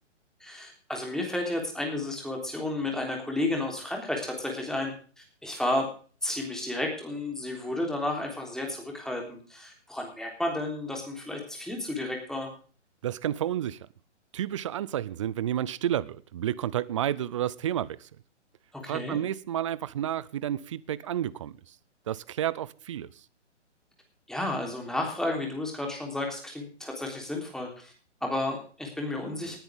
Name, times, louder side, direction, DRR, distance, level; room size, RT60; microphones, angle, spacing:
voice 1, 0.4-5.9 6.2-12.5 18.7-19.2 24.3-27.9 28.2-29.6, left 1 dB, ahead, 3.4 m, -32 dB
voice 2, 13.0-13.9 14.3-18.1 18.8-21.8 22.1-23.1, right 11 dB, 25° right, 0.5 m, -31 dB
19.0 x 10.5 x 3.6 m
hypercardioid pair, 145°, 36 cm